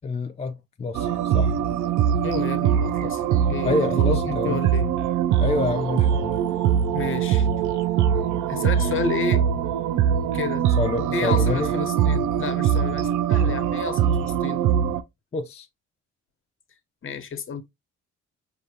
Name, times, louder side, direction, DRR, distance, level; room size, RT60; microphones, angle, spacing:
voice 1, 0.0-1.6 3.6-4.6 5.4-6.4 10.8-11.7 15.3-15.7, left 3 dB, 25° left, 0.3 m, -27 dB
sound 1, 0.9-15.0, right 9 dB, 80° right, 0.5 m, -22 dB
voice 2, 2.2-4.9 6.9-7.7 8.5-9.4 10.3-10.7 11.1-14.6 17.0-17.6, left 6 dB, 45° left, 0.9 m, -31 dB
4.9 x 2.5 x 2.8 m
cardioid pair, 90°, 30 cm